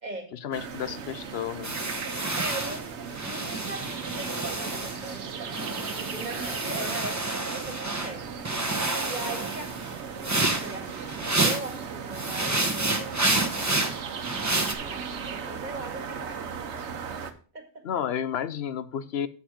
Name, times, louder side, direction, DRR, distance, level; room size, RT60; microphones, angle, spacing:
voice 1, 0.3-1.7 17.8-19.3, left 9 dB, 70° left, 14 dB, 0.9 m, -31 dB
sound 1, 0.5-17.3, right 6 dB, 80° right, 1.2 m, -37 dB
sound 2, 1.6-5.2 5.5-8.1 8.4-11.8 12.1-14.7, right 2 dB, 15° right, 0.9 m, -29 dB
voice 2, 2.3-8.2 9.0-13.4 14.8-16.9 17.2-17.3 17.5-17.7, right 3 dB, 40° right, 4 dB, 2.1 m, -40 dB
7.9 x 7.7 x 5.0 m, 0.39 s
omnidirectional pair, 1.1 m